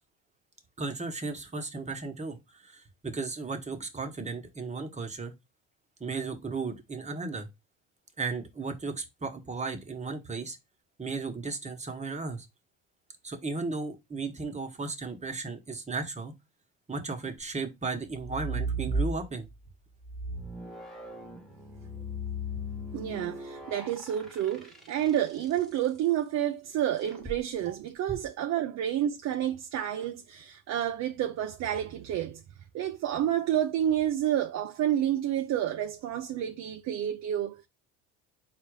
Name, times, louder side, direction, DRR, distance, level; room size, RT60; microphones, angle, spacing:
voice 1, 0.8-5.3 6.0-7.5 8.2-10.6 11.0-12.5 13.2-16.3 16.9-19.5, right 4 dB, 20° right, 1.1 m, -35 dB
sound 1, 18.1-19.5 20.0-25.5 27.0-27.4, right 1 dB, ahead, 1.3 m, -36 dB
voice 2, 22.9-32.4 32.7-37.7, right 11 dB, 50° right, 0.6 m, -29 dB
4.1 x 2.5 x 4.7 m
supercardioid pair, 85°, 34 cm